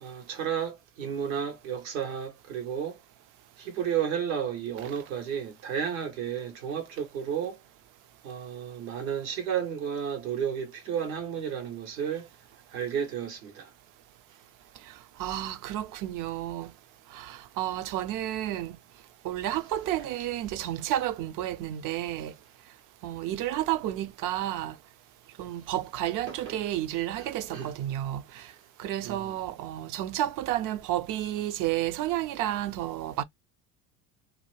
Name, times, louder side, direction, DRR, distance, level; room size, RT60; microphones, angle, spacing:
voice 1, 0.0-3.0 3.6-7.6 8.2-12.3 12.7-13.7 26.3-26.6 27.2-27.7 29.0-29.3, right 8 dB, 85° right, 1.2 m, -32 dB
voice 2, 15.2-16.7 17.1-18.8 19.2-22.3 23.0-24.8 25.4-28.5 28.8-33.2, right 13 dB, 50° right, 0.5 m, -31 dB
2.8 x 2.2 x 3.1 m
supercardioid pair, 85°, 40 cm